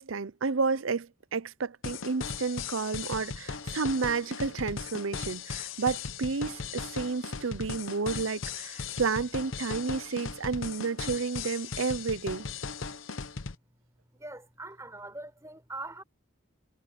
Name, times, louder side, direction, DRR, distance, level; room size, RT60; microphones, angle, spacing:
voice 1, 0.0-12.5, right 4 dB, 80° right, 0.7 m, -31 dB
sound 1, 1.8-13.5, left 5 dB, 80° left, 0.9 m, -38 dB
voice 2, 14.1-16.0, right 2 dB, 15° right, 4.8 m, -42 dB
head